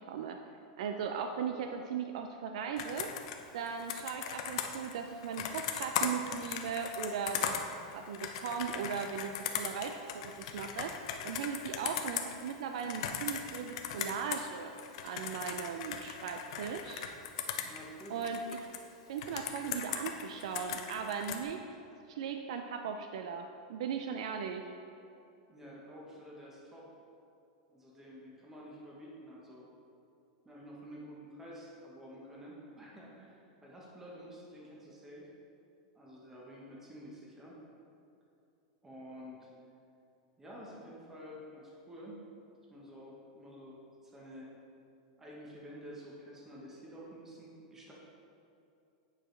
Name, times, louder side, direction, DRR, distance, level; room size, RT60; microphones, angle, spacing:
voice 1, 0.1-0.5 0.8-3.1 3.5-7.5 7.9-10.9 11.2-14.7 15.0-17.1 18.1-18.4 19.1-21.6 22.1-24.6, right 6 dB, 70° right, 5 dB, 0.4 m, -38 dB
Computer keyboard, 2.8-14.5 14.8-18.8 19.2-21.4, left 8 dB, 65° left, 0.6 m, -38 dB
voice 2, 17.6-18.2 25.5-26.9 27.7-29.7 30.4-35.3 35.9-37.6 38.8-39.5 40.4-42.2 42.7-44.5 45.2-47.9, equal, 10° right, -4 dB, 1.0 m, -50 dB
8.8 x 4.8 x 3.2 m, 2.7 s
supercardioid pair, 150°, 4 cm